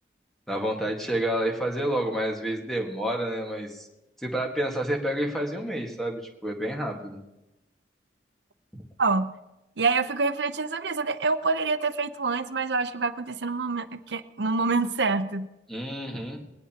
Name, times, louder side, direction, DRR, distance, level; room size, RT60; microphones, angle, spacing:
voice 1, 0.5-3.9 4.2-7.2 8.7-8.8 15.7-16.4, right 1 dB, ahead, 0 dB, 1.6 m, -29 dB
voice 2, 9.0-9.3 9.8-15.5, right 4 dB, 75° right, 11 dB, 0.8 m, -26 dB
21.0 x 18.0 x 2.9 m, 0.99 s
head